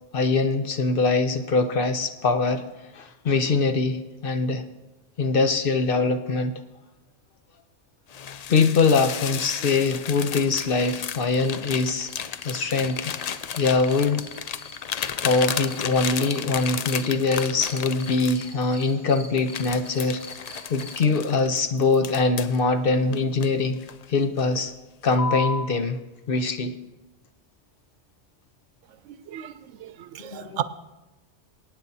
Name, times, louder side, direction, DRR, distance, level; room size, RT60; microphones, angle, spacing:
voice 1, 0.1-2.6 2.9-4.7 5.2-6.5 8.5-12.1 12.4-13.1 13.6-14.2 15.0-20.2 20.7-23.8 24.1-24.7 25.0-26.0 26.3-26.8 30.2-30.6, left 4 dB, 55° left, 8 dB, 0.8 m, -23 dB
sound 1, 8.1-18.9 19.4-22.6 23.1-24.0 24.4-24.7 25.1-25.7, left 7 dB, 75° left, 0.3 m, -33 dB
Cricket Uxmal, 10.5-21.1, left 1 dB, 15° left, 1.8 m, -47 dB
voice 2, 29.1-30.6, right 11 dB, 85° right, 13 dB, 0.9 m, -34 dB
25.0 x 9.0 x 2.7 m, 1.1 s
omnidirectional pair, 1.2 m